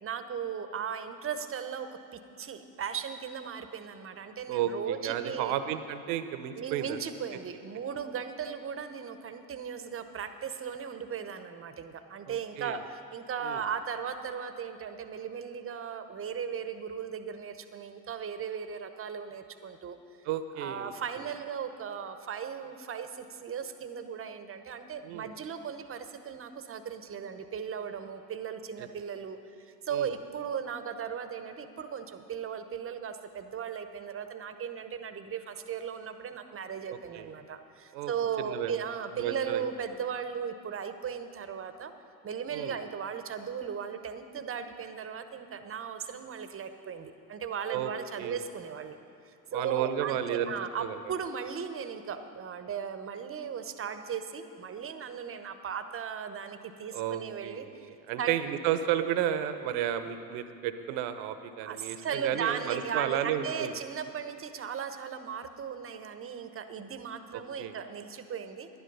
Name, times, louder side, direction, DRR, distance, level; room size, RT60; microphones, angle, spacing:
voice 1, 0.0-5.5 6.6-20.0 20.6-41.9 42.2-49.0 49.2-57.9 58.2-58.3 61.6-68.7, right 7 dB, 30° right, 9 dB, 0.9 m, -37 dB
voice 2, 4.5-7.0 12.3-12.8 13.4-13.6 20.2-20.9 25.0-25.3 28.8-28.9 29.9-30.1 36.9-37.3 37.9-38.1 38.4-38.8 39.1-39.6 42.5-42.8 47.7-47.9 48.2-48.4 49.5-50.5 50.8-51.0 56.9-63.7 67.3-67.7, right 10 dB, 65° right, 10 dB, 0.9 m, -32 dB
11.0 x 10.5 x 5.4 m, 2.7 s
hypercardioid pair, 75°, 47 cm